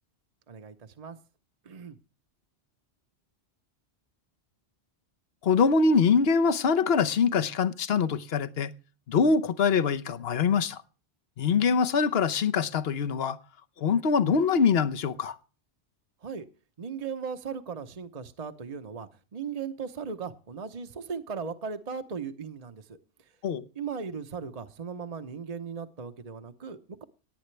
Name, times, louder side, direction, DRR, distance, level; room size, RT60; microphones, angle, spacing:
voice 1, 0.5-1.2 1.6-2.0 16.2-16.5 16.8-23.3 23.7-27.0, right 6 dB, 40° right, 0.9 m, -37 dB
voice 2, 5.4-8.7 9.1-10.8 11.4-13.4 13.8-15.4 23.4-23.6, left 5 dB, 65° left, 1.1 m, -24 dB
17.5 x 9.4 x 3.2 m
omnidirectional pair, 1.1 m